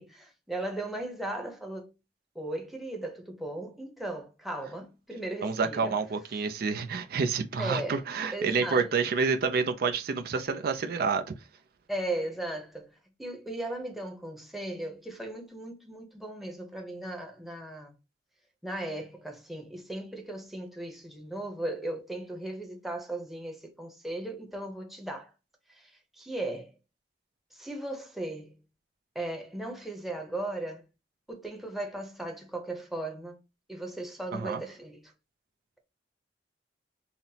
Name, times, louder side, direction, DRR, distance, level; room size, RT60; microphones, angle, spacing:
voice 1, 0.0-1.9 2.3-6.0 7.6-8.0 8.3-8.9 11.9-12.9 13.2-17.9 18.6-25.3 25.7-26.7 27.5-28.6 29.1-30.8 31.3-33.4 33.7-35.1, right 1 dB, ahead, 0.7 m, -37 dB
voice 2, 5.4-11.2 34.3-34.6, right 5 dB, 60° right, 0.4 m, -28 dB
5.6 x 2.0 x 2.7 m
head